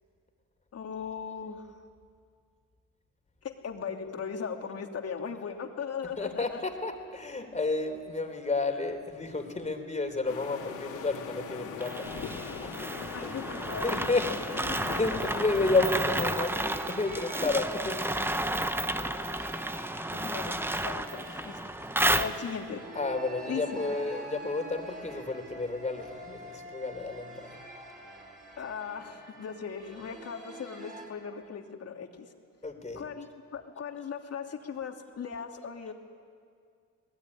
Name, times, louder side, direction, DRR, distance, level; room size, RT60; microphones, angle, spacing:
voice 1, 0.7-1.8 3.4-6.6 13.1-14.1 14.9-15.0 15.3-15.4 20.1-21.6 22.1-22.8 23.5-23.9 28.6-32.3 32.9-35.9, left 6 dB, 55° left, 3 dB, 2.7 m, -38 dB
voice 2, 6.2-12.1 12.6-12.7 13.2-13.3 13.8-18.0 18.3-18.8 23.0-27.3 32.6-33.1, left 3 dB, 25° left, 5 dB, 3.6 m, -31 dB
sound 1, 10.3-16.5, left 7 dB, 85° left, 3.4 m, -41 dB
sound 2, 11.8-22.8, right 1 dB, 5° right, 1.0 m, -32 dB
sound 3, 15.1-31.1, right 1 dB, 25° right, 7.6 m, -47 dB
28.0 x 19.5 x 9.9 m, 2.2 s
cardioid pair, 90°, 30 cm